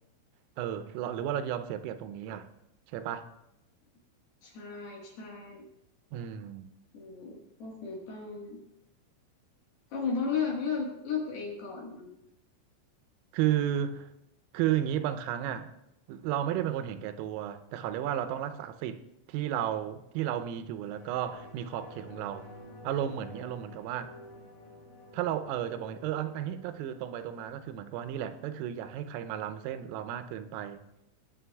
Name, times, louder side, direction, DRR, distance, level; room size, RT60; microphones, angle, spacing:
voice 1, 0.6-2.5 2.9-3.3 6.1-6.7 13.3-14.1 14.5-15.8 16.1-19.0 19.3-22.5 22.8-24.1 25.1-30.8, right 11 dB, 90° right, 3.3 m, -33 dB
voice 2, 4.4-5.7 6.9-8.6 9.9-12.1, left 5 dB, 65° left, 2.8 m, -35 dB
sound 1, 20.8-29.8 30.1-30.2, left 1 dB, 40° left, 3.0 m, -52 dB
20.5 x 9.0 x 2.3 m
omnidirectional pair, 5.9 m